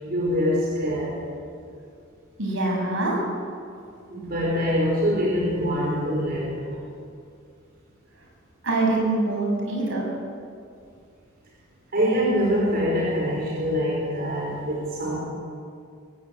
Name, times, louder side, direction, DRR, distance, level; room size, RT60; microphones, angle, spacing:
voice 1, 0.0-1.2 4.1-6.8 11.9-15.2, equal, 50° right, -4 dB, 5.2 m, -24 dB
voice 2, 2.4-3.2 8.6-10.1, right 2 dB, 70° right, -1 dB, 6.9 m, -24 dB
23.5 x 15.5 x 8.5 m, 2.3 s
head